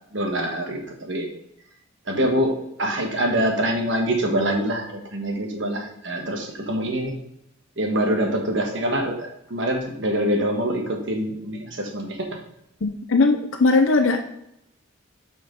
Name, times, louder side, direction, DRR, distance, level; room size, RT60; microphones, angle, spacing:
voice 1, 0.1-1.3 2.1-7.1 7.8-12.2, right 1 dB, 60° right, 2 dB, 1.5 m, -25 dB
voice 2, 12.8-14.2, left 3 dB, 75° left, 5 dB, 0.6 m, -19 dB
6.1 x 4.7 x 5.2 m, 0.78 s
head